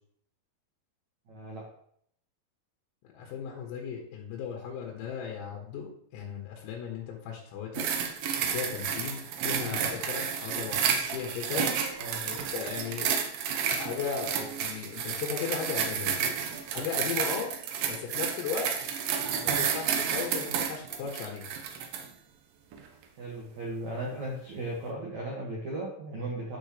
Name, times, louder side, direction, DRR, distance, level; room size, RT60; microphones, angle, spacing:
voice 1, 1.3-1.7 9.4-9.9 12.0-12.3 23.2-26.6, right 1 dB, 55° right, -3 dB, 2.1 m, -37 dB
voice 2, 3.1-7.9 8.5-10.8 11.1-11.7 12.2-13.1 13.8-16.2 16.7-17.5 17.9-18.7 19.4-21.5, left 7 dB, 90° left, 0 dB, 4.4 m, -36 dB
sound 1, 7.7-22.1 22.7-22.9, right 7 dB, 90° right, 2.0 m, -31 dB
12.0 x 11.0 x 3.3 m, 0.67 s
omnidirectional pair, 6.0 m